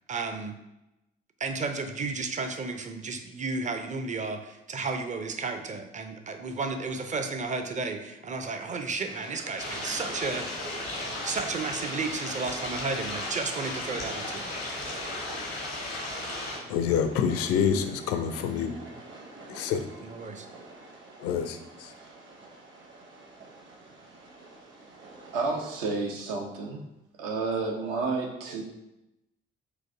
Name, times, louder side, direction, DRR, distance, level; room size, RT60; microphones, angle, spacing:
voice 1, 0.1-0.6 1.4-10.5 11.2-14.5 20.0-20.5, right 4 dB, 25° right, 6 dB, 0.5 m, -33 dB
Train, 9.0-26.0, right 2 dB, 40° right, 0.9 m, -47 dB
sound 1, 9.6-16.6, left 2 dB, 85° left, 0.8 m, -35 dB
voice 2, 16.7-18.8 19.5-19.9 21.2-21.9, left 7 dB, 55° left, 8 dB, 0.4 m, -27 dB
voice 3, 25.3-26.8 27.2-28.6, right 3 dB, 70° right, 2 dB, 0.7 m, -30 dB
4.0 x 2.6 x 3.4 m, 0.92 s
figure-of-eight pair, 40°, 30 cm